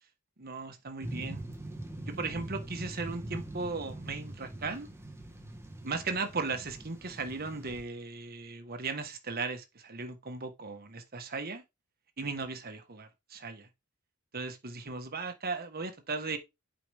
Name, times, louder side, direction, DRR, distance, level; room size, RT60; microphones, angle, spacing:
voice 1, 0.4-1.4 2.1-4.9 5.8-11.6 12.2-13.7 14.3-16.4, right 4 dB, 45° right, 1.3 m, -37 dB
sound 1, 1.0-7.8, right 1 dB, 10° right, 1.4 m, -43 dB
8.5 x 4.9 x 3.4 m
head